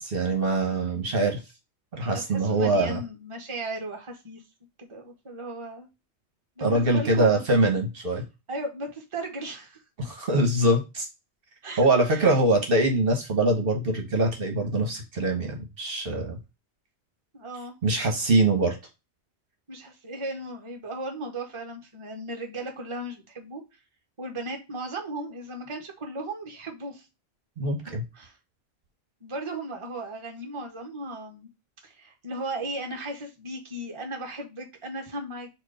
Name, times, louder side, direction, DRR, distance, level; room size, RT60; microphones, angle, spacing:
voice 1, 0.0-1.4 1.9-3.0 6.6-8.2 10.0-11.1 11.8-16.4 17.8-18.8 27.6-28.0, right 2 dB, 60° right, 2 dB, 1.2 m, -23 dB
voice 2, 2.1-4.4 4.8-5.9 6.6-7.4 8.5-9.8 11.6-12.3 17.3-17.8 19.7-23.6 24.2-27.0 28.1-28.4 29.2-31.5 31.8-35.5, right 1 dB, 30° right, 2 dB, 1.0 m, -36 dB
4.5 x 2.4 x 4.8 m, 0.25 s
omnidirectional pair, 1.1 m